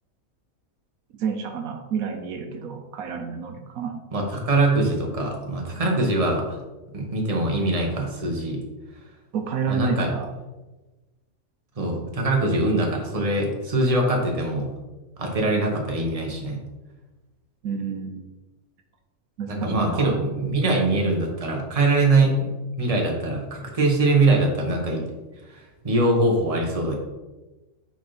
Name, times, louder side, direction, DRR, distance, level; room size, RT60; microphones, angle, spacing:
voice 1, 1.1-4.0 9.3-10.3 17.6-18.2 19.4-20.2, right 6 dB, 80° right, 4 dB, 1.2 m, -29 dB
voice 2, 4.1-6.6 6.9-8.6 9.7-10.1 11.8-14.7 15.2-16.6 19.5-22.5 22.8-25.0 25.5-27.0, right 2 dB, 25° right, 0 dB, 1.3 m, -23 dB
5.9 x 4.3 x 5.8 m, 1.1 s
omnidirectional pair, 1.5 m